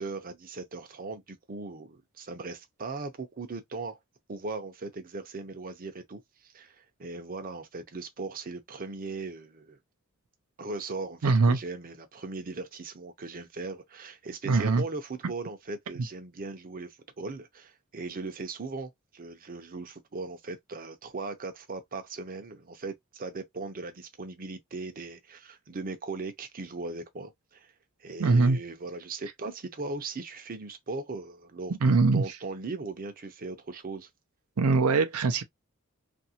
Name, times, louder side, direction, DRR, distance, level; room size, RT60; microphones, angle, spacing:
voice 1, 0.0-4.0 4.3-9.8 10.6-27.7 28.0-34.1, right 3 dB, 40° right, 0.7 m, -39 dB
voice 2, 11.2-11.6 14.4-14.8 28.2-28.6 31.8-32.2 34.6-35.4, right 3 dB, 80° right, 0.5 m, -22 dB
2.8 x 2.6 x 2.8 m
head